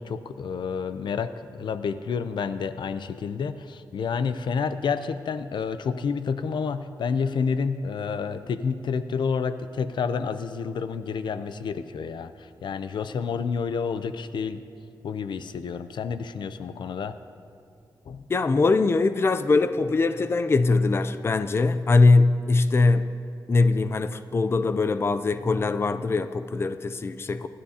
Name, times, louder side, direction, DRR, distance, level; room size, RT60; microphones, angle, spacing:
voice 1, 0.0-14.6 15.0-17.2 18.1-18.2, left 5 dB, 90° left, 11 dB, 0.5 m, -29 dB
voice 2, 18.3-23.1 23.5-27.5, left 3 dB, 30° left, 11 dB, 0.4 m, -22 dB
26.0 x 11.0 x 2.8 m, 2.4 s
wide cardioid pair, 140°, 8 cm